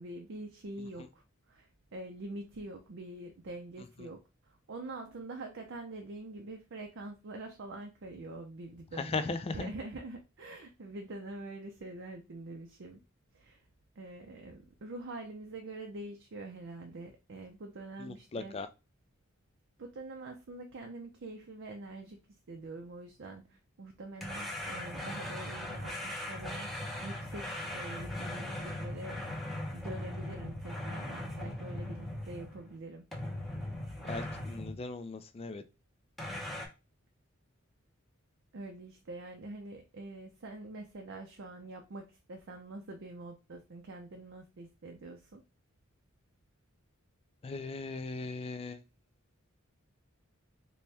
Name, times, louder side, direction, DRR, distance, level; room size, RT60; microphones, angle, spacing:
voice 1, 0.0-13.0 13.3-13.7 14.0-18.6 19.8-26.7 27.0-29.2 29.7-33.0 38.5-45.4, right 2 dB, 60° right, 3 dB, 0.5 m, -45 dB
voice 2, 9.0-9.7 18.0-18.7 34.0-35.6 47.4-48.8, left 3 dB, 30° left, 10 dB, 0.4 m, -38 dB
sound 1, 24.2-32.7 33.1-34.8 36.2-36.7, left 1 dB, ahead, 0.7 m, -39 dB
4.2 x 2.2 x 3.3 m, 0.28 s
head